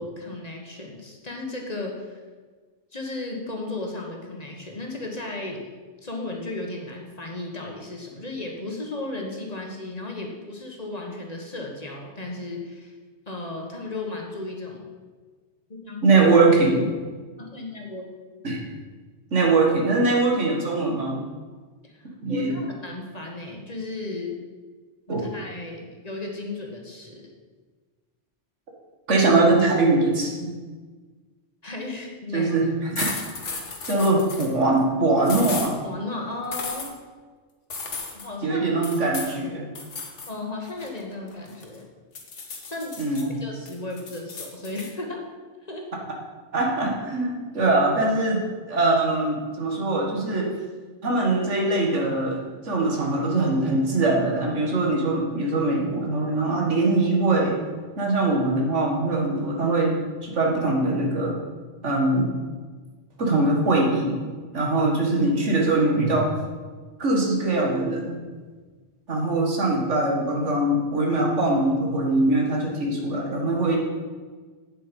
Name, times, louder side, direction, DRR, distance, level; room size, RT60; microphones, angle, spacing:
voice 1, 0.0-2.2 2.9-5.7 6.0-13.0 13.3-14.9 15.7-16.0 17.4-18.1 21.8-24.4 25.1-27.3 31.6-32.7 33.9-34.1 35.8-36.9 38.1-38.7 40.3-41.9 42.7-43.0 43.3-45.2 45.6-45.9, left 2 dB, 35° left, 0 dB, 1.5 m, -35 dB
voice 2, 16.0-16.9 18.4-18.6 19.3-21.2 22.2-22.6 25.1-25.2 29.1-30.5 32.3-32.6 32.9-33.1 33.8-35.8 38.4-39.6 43.0-43.4 46.5-50.5 51.0-57.6 58.0-61.4 61.8-62.3 63.2-64.2 64.5-66.3 67.0-68.2 69.1-73.8, right 2 dB, 90° right, 0 dB, 2.0 m, -22 dB
sound 1, 33.0-34.5 35.2-35.7 36.5-36.9 37.7-38.3 38.8-39.4 39.8-40.3 40.7-41.8 42.2-43.2 43.7-44.9, left 4 dB, 90° left, 1.6 m, -34 dB
8.8 x 7.7 x 5.3 m, 1.4 s
omnidirectional pair, 1.2 m